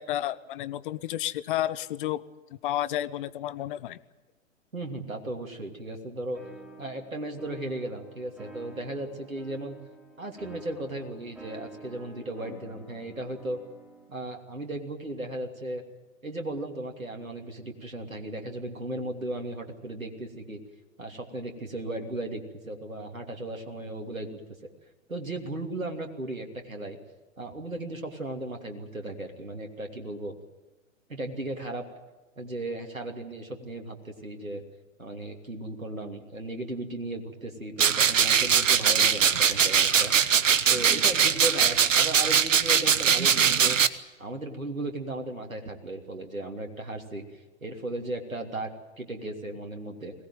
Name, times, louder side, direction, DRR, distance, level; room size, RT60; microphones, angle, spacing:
voice 1, 0.0-2.2 2.6-4.0, left 13 dB, 40° left, 16 dB, 0.9 m, -31 dB
voice 2, 4.7-6.4 6.8-9.8 10.2-13.6 14.1-15.8 16.2-20.6 21.0-24.7 25.1-27.0 27.4-30.3 31.1-31.9 32.4-34.6 35.0-40.1 40.7-43.8 44.2-50.1, right 1 dB, 90° right, 3 dB, 3.0 m, -36 dB
sound 1, 6.3-14.1, right 2 dB, 5° right, 6.1 m, -49 dB
sound 2, 37.8-43.9, right 7 dB, 70° right, 1.2 m, -21 dB
22.0 x 19.0 x 9.2 m, 1.1 s
figure-of-eight pair, 115°, 40 cm